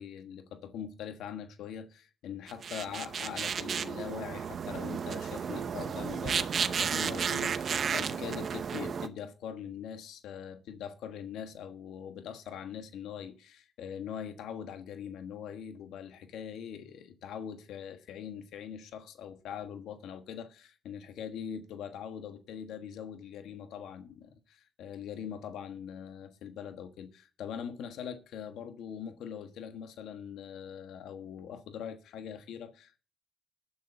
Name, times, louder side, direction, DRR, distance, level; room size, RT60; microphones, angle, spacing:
voice 1, 0.0-33.0, left 8 dB, 80° left, 1.3 m, -42 dB
sound 1, 2.5-9.1, right 7 dB, 50° right, 0.8 m, -33 dB
20.0 x 10.0 x 2.7 m
cardioid pair, 90°, 0 cm